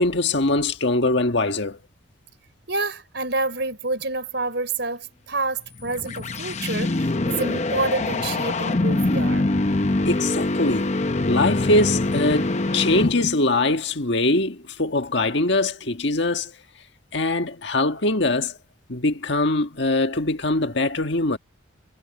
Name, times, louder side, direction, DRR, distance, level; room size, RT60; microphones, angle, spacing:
voice 1, 0.0-1.8 10.1-10.9 11.2-16.5 17.1-18.6 18.9-21.4, left 2 dB, 60° left, 1.7 m, -22 dB
voice 2, 2.7-9.5, right 3 dB, 60° right, 5.5 m, -28 dB
sound 1, 5.7-13.5, left 2 dB, 35° left, 0.8 m, -24 dB
head